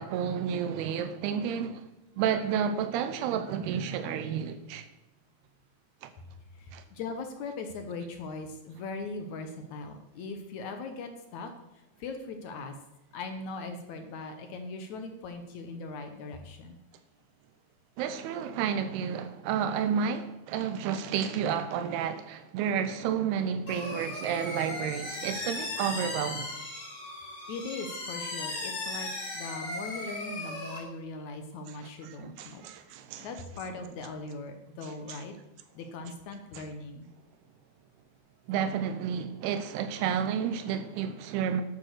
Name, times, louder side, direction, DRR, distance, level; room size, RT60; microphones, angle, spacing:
voice 1, 0.0-1.9 2.2-4.9 6.0-6.1 6.7-6.8 18.0-26.5 31.7-33.3 34.8-35.2 36.6-36.7 38.5-41.6, right 8 dB, 85° right, 2.8 m, -31 dB
voice 2, 6.6-11.5 12.0-12.7 13.1-16.8 27.5-32.7 33.2-35.3 35.7-37.1, left 3 dB, 65° left, 1.9 m, -40 dB
sound 1, 23.7-30.8, left 2 dB, 35° left, 3.6 m, -37 dB
11.5 x 8.7 x 6.5 m
omnidirectional pair, 4.5 m